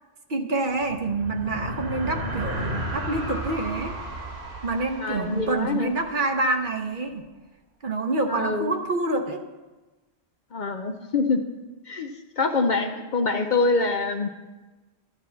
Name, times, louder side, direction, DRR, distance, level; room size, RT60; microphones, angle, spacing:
voice 1, 0.3-4.0 4.6-7.3 7.8-9.4, right 2 dB, 55° right, 6 dB, 0.9 m, -27 dB
Aeroplane White Noise, 0.7-6.4, right 1 dB, 75° right, 1.9 m, -34 dB
voice 2, 5.0-5.9 8.3-8.7 10.5-11.4 11.9-14.3, left 3 dB, 50° left, 6 dB, 0.7 m, -25 dB
12.5 x 4.5 x 7.1 m, 1.2 s
omnidirectional pair, 1.1 m